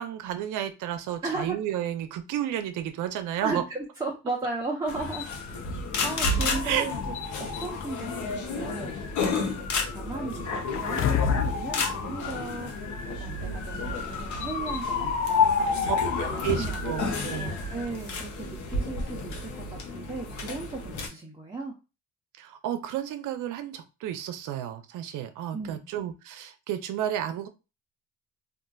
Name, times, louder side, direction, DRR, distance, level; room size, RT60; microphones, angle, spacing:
voice 1, 0.0-3.6 6.6-6.9 15.9-17.6 22.4-27.5, right 10 dB, 85° right, 9 dB, 0.5 m, -32 dB
voice 2, 1.2-1.6 3.4-5.3 6.0-9.0 9.2-9.7 9.9-12.9 13.2-15.0 15.3-19.6 19.9-21.7 25.5-25.8, right 3 dB, 15° right, -2 dB, 0.7 m, -36 dB
sound 1, 4.9-21.1, left 4 dB, 70° left, 0.9 m, -30 dB
sound 2, 10.7-11.6 12.0-12.1, left 7 dB, 45° left, 0.4 m, -25 dB
3.8 x 2.4 x 2.3 m, 0.29 s
cardioid pair, 90°, 30 cm